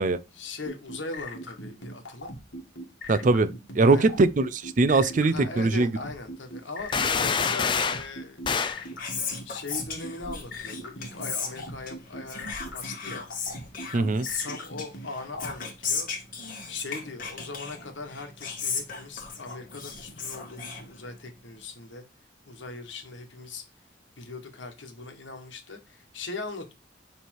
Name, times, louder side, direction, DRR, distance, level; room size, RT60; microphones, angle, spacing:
voice 1, 0.3-2.3 3.8-4.1 5.3-8.4 9.4-12.5 12.7-13.3 14.4-16.1 16.7-22.0 22.4-23.6 24.2-26.7, left 3 dB, 85° left, 1.4 m, -40 dB
sound 1, 0.6-15.5, left 1 dB, 70° left, 1.7 m, -39 dB
voice 2, 3.1-3.5 3.8-5.9 13.9-14.3, right 3 dB, 45° right, 0.5 m, -21 dB
sound 2, 6.9-8.1 8.4-8.8, left 6 dB, 25° left, 0.4 m, -26 dB
Whispering, 8.6-21.4, left 5 dB, 50° left, 1.7 m, -36 dB
6.8 x 3.3 x 4.5 m
head